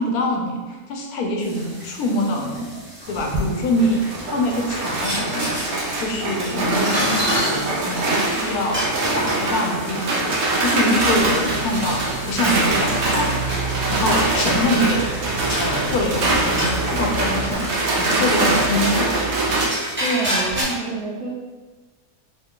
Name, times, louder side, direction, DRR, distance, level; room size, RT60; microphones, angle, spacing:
voice 1, 0.0-2.7 3.1-5.7 6.0-19.9, left 1 dB, 80° left, 1 dB, 1.1 m, -25 dB
sound 1, 1.4-20.6, equal, 10° right, 0.7 m, -32 dB
sound 2, 3.1-19.7, right 2 dB, 60° right, 0.8 m, -23 dB
sound 3, 11.0-17.6, right 3 dB, 65° left, 1.1 m, -32 dB
voice 2, 20.0-21.3, right 3 dB, 80° right, -3 dB, 1.2 m, -27 dB
3.2 x 2.2 x 3.5 m, 1.3 s
omnidirectional pair, 1.6 m